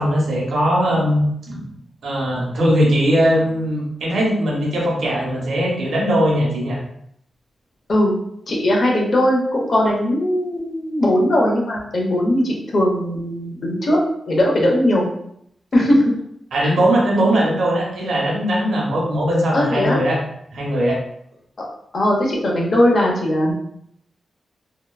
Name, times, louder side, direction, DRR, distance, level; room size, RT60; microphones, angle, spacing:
voice 1, 0.0-1.6 2.0-6.8 16.5-20.2 20.5-21.0, equal, 85° right, -3 dB, 0.9 m, -19 dB
voice 2, 8.5-14.0 14.3-15.1 15.7-16.1 16.6-16.7 19.5-20.0 21.6-21.7 21.9-23.5, left 1 dB, 45° left, -2 dB, 0.7 m, -18 dB
2.8 x 2.2 x 2.2 m, 0.71 s
wide cardioid pair, 125°, 0 cm